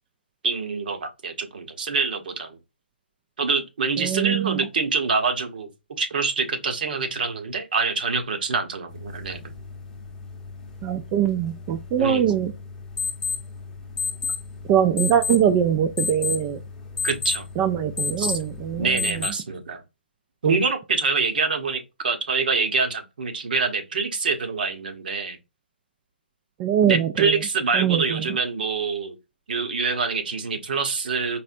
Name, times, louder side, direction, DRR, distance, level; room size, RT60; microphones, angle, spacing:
voice 1, 0.4-2.6 3.4-5.7 6.0-9.5 12.0-12.3 17.0-17.5 18.2-18.3 18.8-19.8 20.4-25.4 26.8-29.2 29.5-31.4, right 4 dB, 55° right, 1.0 m, -25 dB
voice 2, 4.0-4.7 10.8-12.5 14.7-16.6 17.6-19.3 26.6-27.4 27.7-28.3, right 9 dB, 20° right, 0.3 m, -23 dB
sound 1, 8.9-19.3, left 5 dB, 10° left, 0.8 m, -32 dB
4.2 x 3.2 x 2.5 m
figure-of-eight pair, 145°, 6 cm